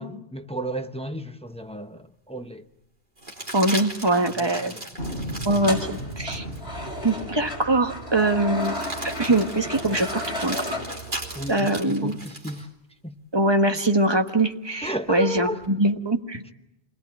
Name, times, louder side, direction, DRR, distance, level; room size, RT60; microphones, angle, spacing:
voice 1, 0.0-2.6 4.3-4.9 9.9-10.1 11.3-12.7 13.0-13.2 14.8-15.6, right 1 dB, 5° left, 0.9 m, -33 dB
sound 1, 1.6-1.7 3.2-6.6 7.2-7.3 8.6-12.7 14.8-15.7, right 1 dB, 45° right, 3.8 m, -37 dB
voice 2, 3.5-4.7 5.4-6.5 7.0-8.7 9.0-10.7 11.5-12.2 13.3-16.4, right 1 dB, 25° right, 1.4 m, -23 dB
sound 2, 4.9-8.6, equal, 45° left, 8.2 m, -36 dB
sound 3, 5.5-11.5, left 1 dB, 65° left, 6.1 m, -33 dB
27.0 x 21.0 x 8.9 m
omnidirectional pair, 1.1 m